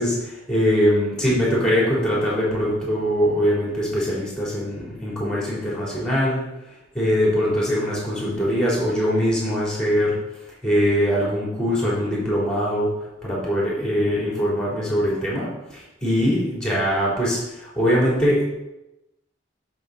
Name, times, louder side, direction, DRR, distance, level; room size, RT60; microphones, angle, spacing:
voice 1, 0.0-6.4 6.9-10.2 10.6-18.4, equal, 5° left, -6 dB, 3.6 m, -22 dB
14.0 x 6.3 x 4.2 m, 0.94 s
head